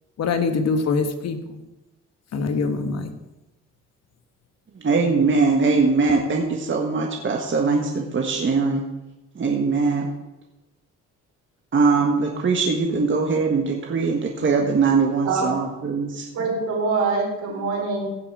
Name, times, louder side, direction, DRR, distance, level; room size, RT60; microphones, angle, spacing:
voice 1, 0.2-1.6 2.3-3.1, left 4 dB, 60° left, 8 dB, 1.3 m, -24 dB
voice 2, 4.8-8.8 9.3-10.1 11.7-16.2, right 4 dB, 40° right, 1 dB, 1.5 m, -21 dB
voice 3, 15.2-15.6 16.3-18.1, right 4 dB, 70° right, -1 dB, 4.2 m, -24 dB
16.0 x 6.1 x 4.9 m, 1.0 s
cardioid pair, 90°, 30 cm